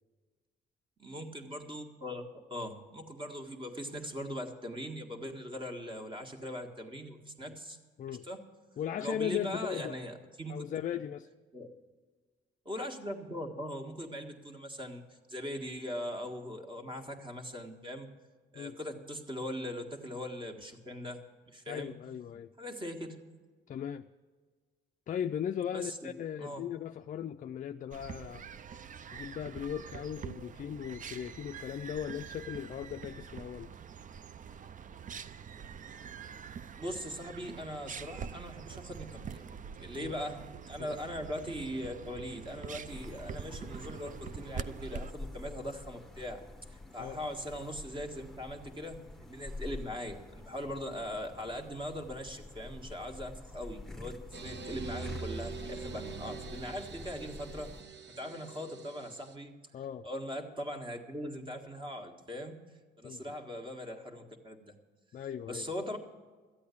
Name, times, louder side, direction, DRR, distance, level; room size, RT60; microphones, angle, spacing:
voice 1, 1.0-2.2 2.5-7.8 8.1-8.4 9.0-10.7 11.5-11.7 12.7-15.0 15.3-18.1 18.5-21.2 21.5-21.9 22.6-23.2 25.7-26.1 26.4-26.6 36.8-39.4 39.8-57.7 58.2-59.5 60.0-62.6 63.0-64.7 65.5-66.0, equal, 25° right, 3 dB, 1.7 m, -40 dB
voice 2, 8.8-9.9 10.5-11.3 18.6-18.8 21.7-22.5 23.7-24.1 25.1-28.4 29.1-33.8 40.0-40.1 40.8-41.0 47.0-47.2 59.7-60.1 63.0-63.2 65.1-65.7, left 9 dB, 40° left, 8 dB, 0.4 m, -38 dB
sound 1, 27.9-45.1, right 7 dB, 40° right, 0.5 m, -45 dB
sound 2, 42.9-57.8, left 2 dB, ahead, 1.0 m, -47 dB
sound 3, 54.3-59.3, right 4 dB, 65° right, 1.1 m, -43 dB
13.0 x 8.5 x 8.4 m, 1.5 s
cardioid pair, 90°, 20 cm